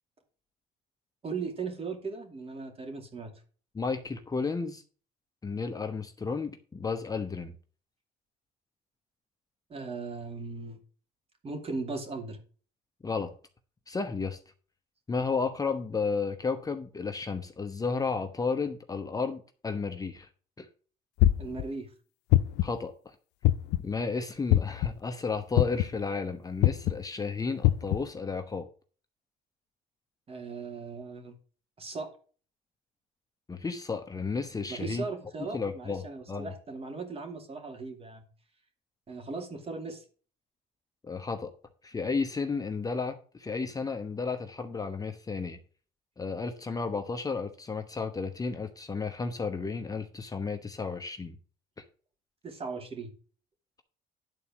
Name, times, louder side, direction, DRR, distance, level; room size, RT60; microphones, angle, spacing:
voice 1, 1.2-3.3 9.7-10.8 11.4-12.4 21.4-21.9 30.3-31.3 31.8-32.1 34.7-38.3 39.1-40.0 52.4-53.1, right 4 dB, 35° right, 5 dB, 2.5 m, -38 dB
voice 2, 3.7-4.8 5.4-7.6 13.0-13.3 13.9-14.4 15.1-20.3 20.6-20.7 22.6-23.1 23.8-28.7 33.5-35.0 35.4-36.5 41.1-41.5 41.8-45.6 46.2-51.4 51.8-51.9, left 4 dB, 20° left, 6 dB, 0.9 m, -33 dB
sound 1, 21.2-21.6 22.3-22.8 23.4-23.9 24.5-24.9 25.6-26.0 26.6-26.9 27.6-28.0, left 15 dB, 85° left, 0.5 m, -22 dB
11.0 x 4.2 x 7.1 m, 0.41 s
cardioid pair, 110°, 17 cm